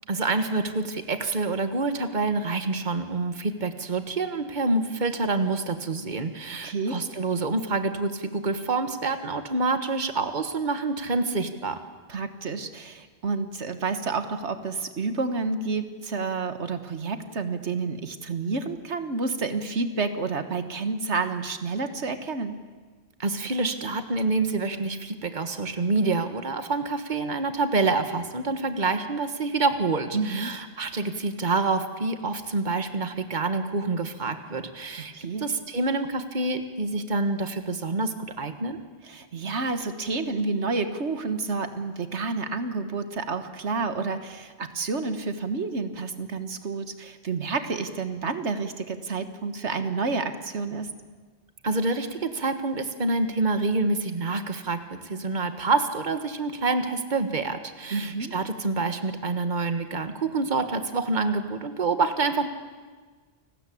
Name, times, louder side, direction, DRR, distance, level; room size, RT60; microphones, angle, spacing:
voice 1, 0.1-11.8 23.2-35.1 35.4-38.8 51.6-62.5, right 3 dB, 45° right, 9 dB, 1.7 m, -27 dB
voice 2, 6.6-7.0 12.1-22.6 30.1-30.6 35.1-35.5 39.0-50.9 57.9-58.3, right 4 dB, 90° right, 9 dB, 1.8 m, -29 dB
29.5 x 19.5 x 8.6 m, 1.4 s
omnidirectional pair, 1.1 m